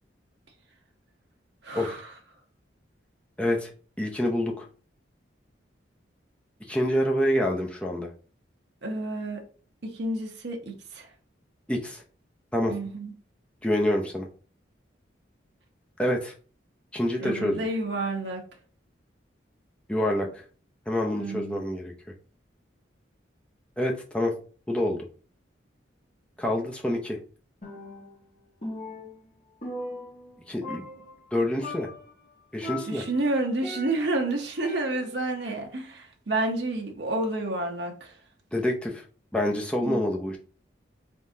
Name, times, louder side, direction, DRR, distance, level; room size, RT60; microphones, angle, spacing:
voice 1, 1.6-2.1 8.8-9.4 9.8-11.1 12.7-13.1 17.2-18.4 21.1-21.6 32.9-38.2 39.8-40.0, right 2 dB, 65° right, 2 dB, 0.9 m, -30 dB
voice 2, 3.4-3.7 4.0-4.7 6.7-8.1 11.7-12.0 12.5-12.7 13.6-14.3 16.0-16.3 16.9-17.7 19.9-20.4 20.9-21.9 23.8-24.3 24.7-25.1 26.4-27.2 30.5-30.8 31.3-31.9 32.5-33.0 38.5-39.0 39.3-40.4, left 1 dB, 5° left, 0 dB, 0.6 m, -27 dB
Percussion, 27.6-28.3 28.6-30.4 30.6-31.3 31.6-32.1 32.6-34.2 34.6-35.3, left 1 dB, 40° left, 1.4 m, -39 dB
3.7 x 3.7 x 2.7 m, 0.39 s
head